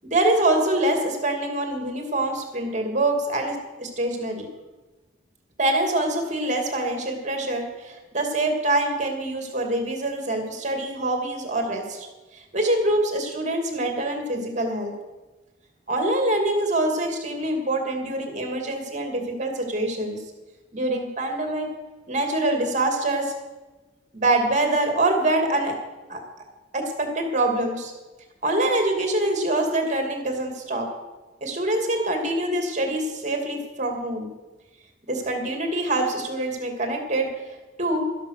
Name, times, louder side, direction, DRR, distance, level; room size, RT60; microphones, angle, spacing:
voice 1, 0.0-4.5 5.6-12.1 12.3-14.9 15.9-20.2 20.7-21.7 22.1-23.3 24.1-25.8 26.1-26.2 26.7-27.9 28.4-30.9 31.4-34.3 35.1-37.3 37.8-38.1, right 1 dB, 40° right, 3 dB, 2.6 m, -25 dB
13.0 x 11.0 x 6.6 m, 1.2 s
head